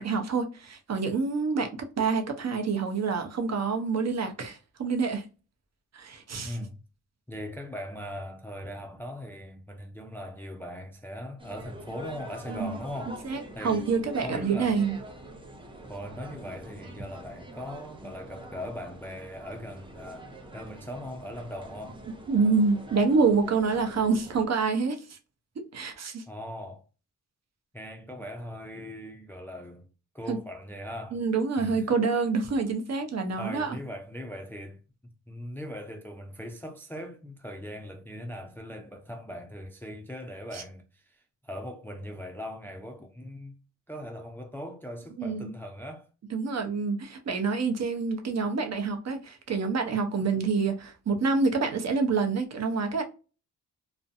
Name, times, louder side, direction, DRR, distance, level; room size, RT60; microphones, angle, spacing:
voice 1, 0.0-1.7 2.0-5.2 5.9-6.6 12.5-12.8 13.2-15.0 22.3-25.2 25.6-26.2 30.3-30.4 31.1-33.8 40.5-40.6 45.2-45.5 46.3-53.0, right 4 dB, 45° right, 0.7 m, -27 dB
voice 2, 6.4-6.8 7.3-13.2 13.5-13.8 14.2-14.8 15.9-22.0 26.3-26.9 27.7-29.9 30.1-31.2 31.6-31.9 33.4-34.8 35.3-43.6 43.9-46.1, equal, 5° left, 0.4 m, -40 dB
sound 1, 11.4-24.5, right 1 dB, 15° right, 0.8 m, -45 dB
2.6 x 2.2 x 2.5 m
cardioid pair, 65°, 37 cm